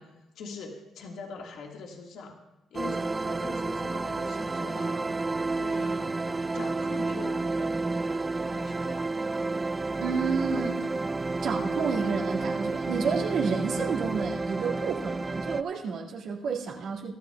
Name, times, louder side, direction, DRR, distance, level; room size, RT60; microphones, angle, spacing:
voice 1, 0.0-2.4 2.7-5.2 5.5-8.1 8.4-9.1, left 4 dB, 80° left, 1 dB, 1.7 m, -43 dB
sound 1, 2.7-15.6, right 3 dB, 25° right, 0.4 m, -30 dB
voice 2, 10.0-10.9 11.4-17.1, right 5 dB, 75° right, -2 dB, 2.1 m, -30 dB
22.5 x 13.0 x 2.3 m, 1.0 s
cardioid pair, 90°, 0 cm